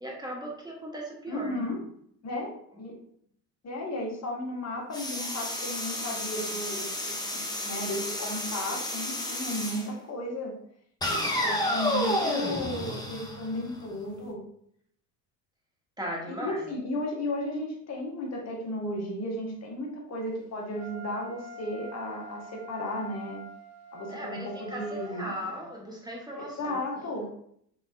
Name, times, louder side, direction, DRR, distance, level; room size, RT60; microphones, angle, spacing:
voice 1, 0.0-1.8 7.1-7.2 16.0-16.6 24.1-27.2, equal, 10° right, -2 dB, 1.1 m, -38 dB
voice 2, 1.3-1.8 2.2-2.5 2.8-3.0 3.6-10.5 11.1-14.4 16.3-23.5 23.9-25.3 26.3-27.3, left 1 dB, 30° left, -1 dB, 1.4 m, -34 dB
sound 1, 4.9-9.9 11.0-13.9, left 1 dB, 10° left, 0.8 m, -31 dB
Wind instrument woodwind instrument, 20.7-25.4, equal, 50° left, 0.9 m, -45 dB
3.6 x 3.4 x 2.6 m, 0.68 s
hypercardioid pair, 70°, 49 cm